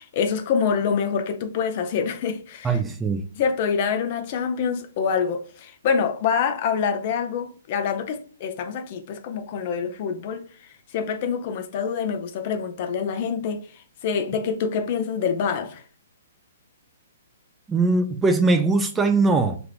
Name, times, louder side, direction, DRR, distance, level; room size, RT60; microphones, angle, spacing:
voice 1, 0.0-2.8 3.4-10.5 10.9-15.8, left 6 dB, 45° left, 0.6 m, -26 dB
voice 2, 2.6-3.2 17.7-19.6, right 3 dB, 10° right, 0.3 m, -21 dB
2.9 x 2.4 x 3.3 m
hypercardioid pair, 125°, 0 cm